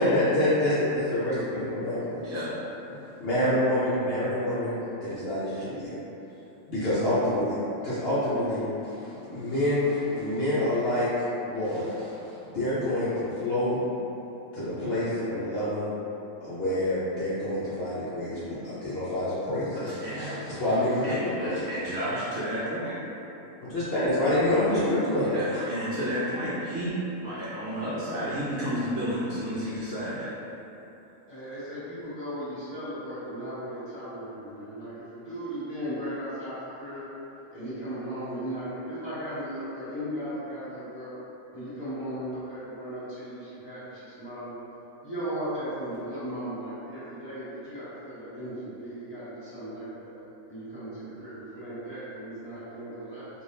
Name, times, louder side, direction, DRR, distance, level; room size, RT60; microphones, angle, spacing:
voice 1, 0.0-2.3 3.2-5.8 6.7-7.6 7.8-11.1 11.5-12.2 12.5-13.8 14.5-15.9 16.4-18.4 18.6-21.6 23.6-25.6, left 1 dB, 55° left, -11 dB, 0.7 m, -27 dB
voice 2, 2.2-2.5 19.7-20.3 21.0-22.9 25.2-30.3, equal, 60° right, -10 dB, 0.8 m, -31 dB
voice 3, 31.3-37.1 37.5-41.1 41.5-44.6 45.0-50.1 50.5-53.4, equal, 20° left, -14 dB, 1.3 m, -36 dB
3.3 x 2.6 x 2.7 m, 3.0 s
omnidirectional pair, 1.4 m